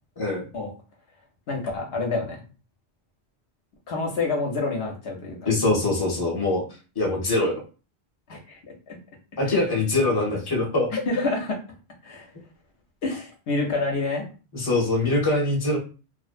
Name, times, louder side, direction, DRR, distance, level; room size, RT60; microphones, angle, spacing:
voice 1, 0.2-0.5 5.4-6.6 6.9-7.6 9.4-10.9 14.5-15.8, left 2 dB, 25° left, -2 dB, 0.8 m, -23 dB
voice 2, 1.5-2.4 3.9-5.4 8.3-8.6 8.9-9.0 10.9-11.6 12.0-12.3 13.0-14.2, left 3 dB, 70° left, 0 dB, 0.9 m, -27 dB
2.5 x 2.1 x 2.4 m, 0.34 s
omnidirectional pair, 1.1 m